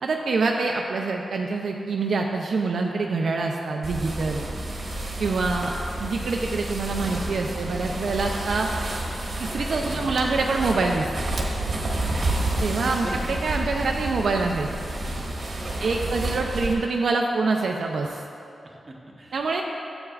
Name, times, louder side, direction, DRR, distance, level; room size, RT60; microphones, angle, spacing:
voice 1, 0.0-4.4 5.2-5.7 6.0-8.7 9.4-11.3 12.6-14.8 15.8-18.2 19.3-19.6, right 3 dB, 65° right, 1 dB, 0.5 m, -25 dB
sound 1, 3.8-16.7, right 1 dB, 40° right, 1.3 m, -30 dB
voice 2, 13.7-14.1 15.1-15.9 18.6-19.4, right 2 dB, 25° right, -2 dB, 1.0 m, -40 dB
12.0 x 8.0 x 2.4 m, 2.6 s
wide cardioid pair, 150°, 0 cm